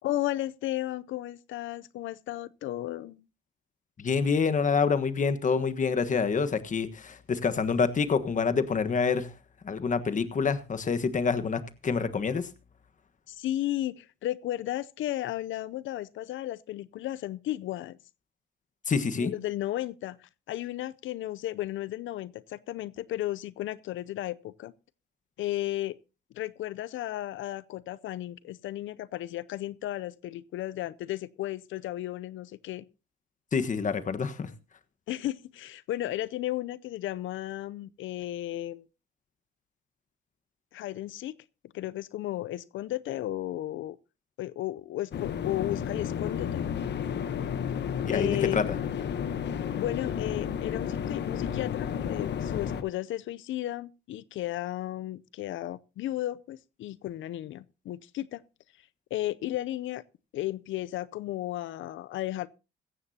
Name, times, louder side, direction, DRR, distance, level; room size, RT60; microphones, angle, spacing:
voice 1, 0.0-3.2 13.3-18.0 19.1-24.7 25.4-25.9 26.3-32.8 35.1-38.8 40.7-41.3 41.7-44.0 44.4-46.7 48.1-48.6 49.8-58.4 59.1-60.0 60.3-62.5, left 14 dB, 75° left, 0.6 m, -34 dB
voice 2, 4.0-9.3 9.6-12.5 18.9-19.3 33.5-34.5 48.0-48.6, left 5 dB, 40° left, 1.4 m, -27 dB
sound 1, 45.1-52.8, left 8 dB, 60° left, 1.2 m, -32 dB
16.0 x 14.0 x 2.8 m
cardioid pair, 90°, 20 cm